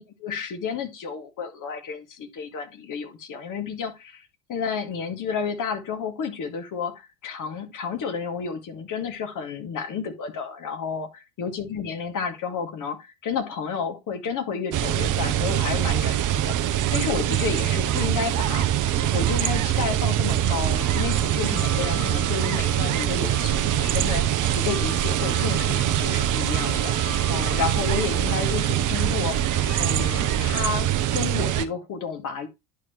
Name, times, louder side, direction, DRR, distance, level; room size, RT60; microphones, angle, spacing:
voice 1, 0.0-11.1 11.4-18.7 19.1-24.2 24.5-32.5, left 6 dB, 40° left, 2.3 m, -31 dB
sound 1, 14.7-31.7, right 11 dB, 40° right, 1.0 m, -23 dB
sound 2, 20.7-30.4, left 9 dB, 80° left, 0.9 m, -41 dB
10.5 x 4.8 x 3.1 m
figure-of-eight pair, 75°, 48 cm